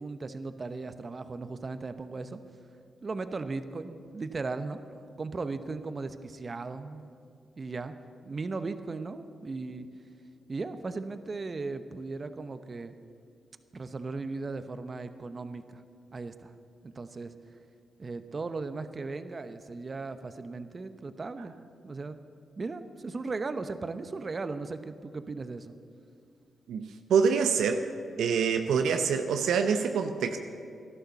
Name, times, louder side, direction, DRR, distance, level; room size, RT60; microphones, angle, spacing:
voice 1, 0.0-2.4 3.0-4.8 5.2-7.1 7.6-7.9 8.2-9.9 10.5-12.9 13.7-15.8 16.1-16.5 16.8-17.3 18.0-21.6 21.8-22.2 22.6-25.8, right 3 dB, 45° right, 11 dB, 0.9 m, -37 dB
voice 2, 26.7-27.9 28.2-30.4, right 6 dB, 75° right, 6 dB, 0.7 m, -26 dB
14.0 x 11.5 x 6.9 m, 2.4 s
hypercardioid pair, 45°, 0 cm